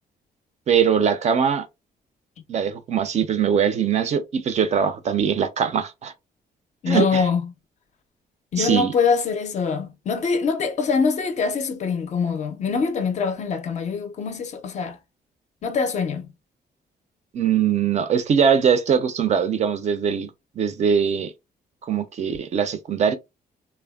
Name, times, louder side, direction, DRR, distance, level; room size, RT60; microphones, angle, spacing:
voice 1, 0.7-1.7 2.5-6.1 6.9-7.3 8.6-8.9 17.3-20.3 20.6-21.3 21.8-23.2, right 7 dB, 45° right, 0.4 m, -21 dB
voice 2, 6.8-7.4 8.5-15.0 15.6-16.3, left 5 dB, 45° left, 0.4 m, -24 dB
3.3 x 2.0 x 2.2 m
wide cardioid pair, 180°, 17 cm